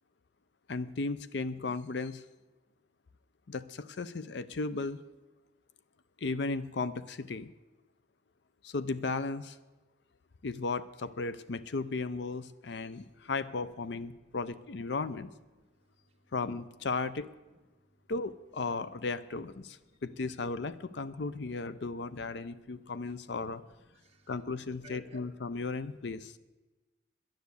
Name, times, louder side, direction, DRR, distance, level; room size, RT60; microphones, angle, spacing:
voice 1, 0.7-2.2 3.5-5.0 6.2-7.5 8.6-9.6 10.4-15.3 16.3-17.3 18.1-23.6 24.3-26.3, left 3 dB, 65° left, 14 dB, 0.5 m, -35 dB
voice 2, 24.7-25.2 25.5-26.0, right 3 dB, 30° right, 2 dB, 1.5 m, -57 dB
10.5 x 10.5 x 8.3 m, 1.2 s
head